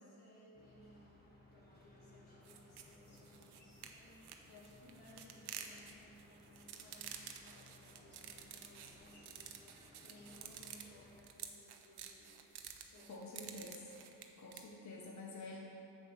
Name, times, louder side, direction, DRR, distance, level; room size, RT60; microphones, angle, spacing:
voice 1, 0.0-13.8, left 1 dB, 85° left, -5 dB, 1.9 m, -62 dB
sound 1, 0.5-11.2, left 2 dB, 25° left, 1.5 m, -63 dB
sound 2, 2.4-14.6, right 8 dB, 90° right, 0.6 m, -51 dB
voice 2, 13.1-13.9 14.4-15.6, left 2 dB, 45° left, -1 dB, 1.0 m, -49 dB
6.7 x 6.7 x 5.0 m, 2.8 s
cardioid pair, 70°, 38 cm